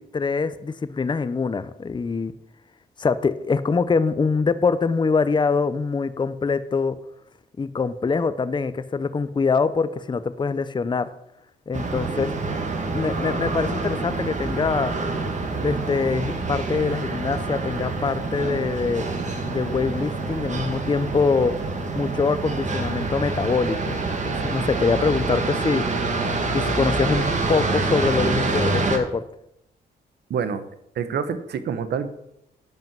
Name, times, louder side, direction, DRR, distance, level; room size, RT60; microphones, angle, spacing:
voice 1, 0.0-2.3 3.0-7.0 7.6-11.1 11.7-12.3 12.9-14.9 15.6-19.1 19.5-21.5 21.9-25.9 26.5-29.2, left 4 dB, 25° left, 14 dB, 0.6 m, -24 dB
sound 1, 11.7-29.0, right 3 dB, 45° right, 2.0 m, -26 dB
voice 2, 30.3-30.7 30.9-32.1, right 7 dB, 75° right, 11 dB, 1.1 m, -27 dB
10.5 x 5.7 x 7.4 m, 0.80 s
cardioid pair, 90°, 18 cm